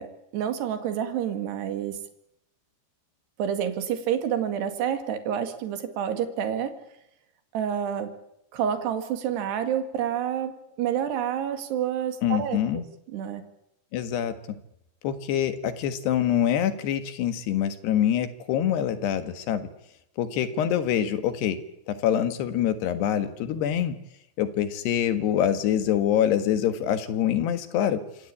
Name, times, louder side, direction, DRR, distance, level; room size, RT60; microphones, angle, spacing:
voice 1, 0.0-2.0 3.4-6.7 7.5-8.1 8.5-12.8 13.1-13.4, right 9 dB, 80° right, 8 dB, 4.2 m, -28 dB
voice 2, 12.2-12.8 13.9-14.3 15.0-19.7 20.2-21.6 21.9-24.0 24.4-28.0, left 10 dB, 80° left, 10 dB, 3.8 m, -25 dB
27.5 x 21.5 x 8.6 m, 0.82 s
omnidirectional pair, 4.8 m